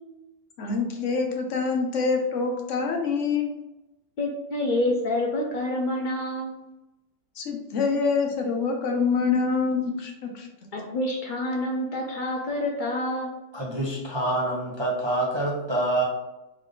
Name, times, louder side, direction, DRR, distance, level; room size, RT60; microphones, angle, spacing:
voice 1, 0.6-3.5 7.4-10.5, left 4 dB, 60° left, 2 dB, 0.9 m, -25 dB
voice 2, 4.2-6.6 10.7-13.4, left 1 dB, 85° left, 0 dB, 0.4 m, -27 dB
voice 3, 13.5-16.0, right 2 dB, 35° right, -4 dB, 0.4 m, -26 dB
3.3 x 3.3 x 3.7 m, 0.98 s
omnidirectional pair, 1.6 m